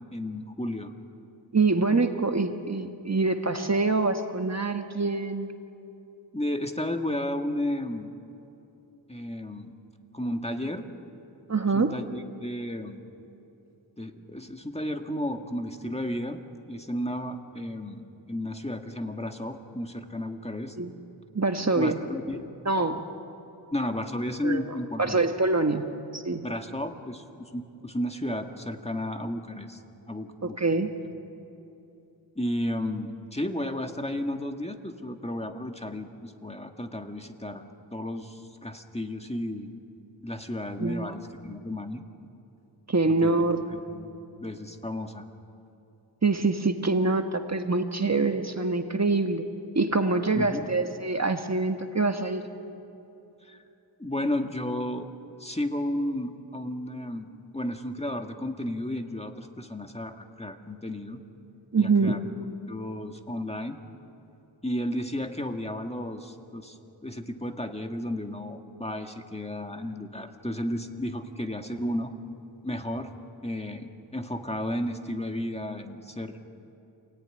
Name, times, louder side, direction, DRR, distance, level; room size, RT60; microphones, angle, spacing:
voice 1, 0.1-0.9 6.3-8.1 9.1-9.8 10.1-10.9 11.7-13.0 14.0-16.4 16.7-20.8 21.8-22.5 23.7-25.2 26.4-30.6 32.4-37.6 37.9-39.7 40.2-42.0 43.2-44.1 44.4-45.2 50.3-50.7 53.4-53.6 54.0-55.1 55.4-61.2 61.8-62.3 62.7-63.8 64.6-66.8 67.0-72.1 72.6-73.1 73.4-76.4, left 1 dB, 15° left, 5 dB, 1.8 m, -33 dB
voice 2, 1.5-5.5 11.5-11.9 20.8-20.9 21.3-22.0 22.6-23.1 24.4-24.6 25.0-25.9 26.1-26.4 30.4-30.9 40.8-41.1 42.9-43.6 46.2-49.4 49.7-52.4 61.7-62.1, right 3 dB, 35° right, 6 dB, 1.4 m, -25 dB
28.0 x 18.0 x 9.9 m, 2.9 s
wide cardioid pair, 65°, 44 cm